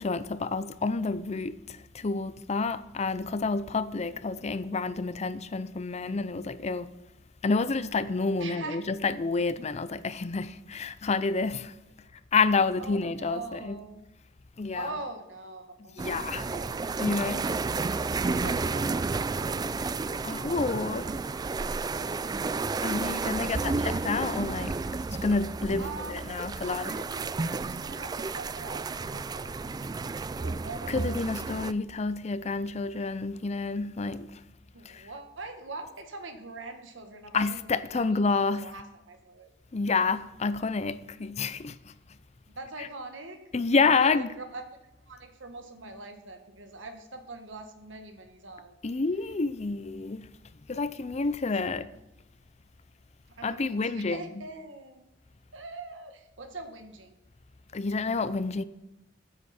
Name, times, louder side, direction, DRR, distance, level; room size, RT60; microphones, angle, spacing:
voice 1, 0.0-6.9 7.4-11.7 12.3-13.8 14.6-14.9 16.0-16.5 17.0-17.5 20.2-21.1 22.8-24.8 25.2-27.0 30.9-34.4 34.8-35.1 37.3-38.7 39.7-41.9 43.5-44.3 48.8-50.3 50.7-51.9 53.4-54.2 57.7-58.6, left 4 dB, 35° left, 0.5 m, -29 dB
voice 2, 3.9-4.4 8.4-8.8 12.0-12.1 12.8-14.0 14.7-16.8 17.8-20.4 25.8-31.7 34.7-39.5 42.5-44.6 45.1-48.7 51.4-52.0 53.3-55.1 55.5-57.1, right 3 dB, 85° right, 1.6 m, -44 dB
sound 1, 16.0-31.7, right 4 dB, 20° right, 0.3 m, -32 dB
15.0 x 8.0 x 4.3 m
head